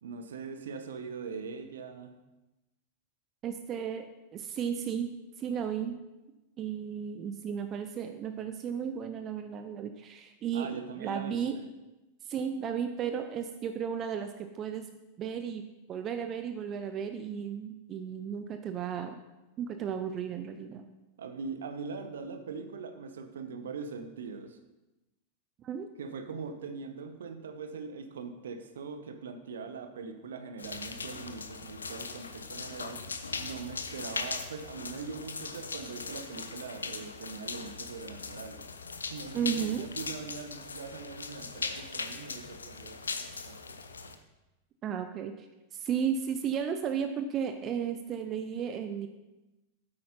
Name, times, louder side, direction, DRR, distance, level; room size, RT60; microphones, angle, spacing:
voice 1, 0.0-2.1 10.5-11.7 21.2-24.6 26.0-38.7 39.1-43.8, right 5 dB, 65° right, 8 dB, 0.9 m, -42 dB
voice 2, 3.4-4.1 4.3-5.1 5.4-6.0 6.6-11.6 12.2-14.9 15.2-15.6 15.9-19.2 19.6-20.9 25.6-25.9 39.3-39.9 44.8-49.1, right 8 dB, 30° right, 7 dB, 0.6 m, -34 dB
sound 1, 30.6-44.2, left 4 dB, 75° left, 0.7 m, -39 dB
8.7 x 8.5 x 4.2 m, 1.0 s
figure-of-eight pair, 90°, 0 cm